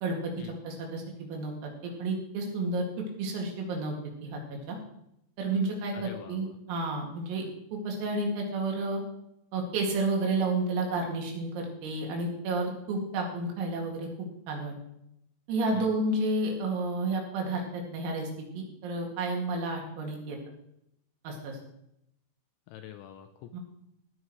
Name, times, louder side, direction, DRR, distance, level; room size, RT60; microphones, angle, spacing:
voice 1, 0.0-0.3 0.6-2.8 3.2-4.0 4.2-4.8 5.4-7.4 7.7-9.0 9.5-14.7 15.5-18.3 18.5-20.4 21.2-21.6 23.5-23.6, right 2 dB, 90° right, 0 dB, 5.0 m, -31 dB
voice 2, 5.9-6.6 15.7-15.9 22.7-23.6, left 10 dB, 85° left, 7 dB, 2.7 m, -45 dB
17.0 x 9.7 x 3.1 m, 0.79 s
omnidirectional pair, 5.9 m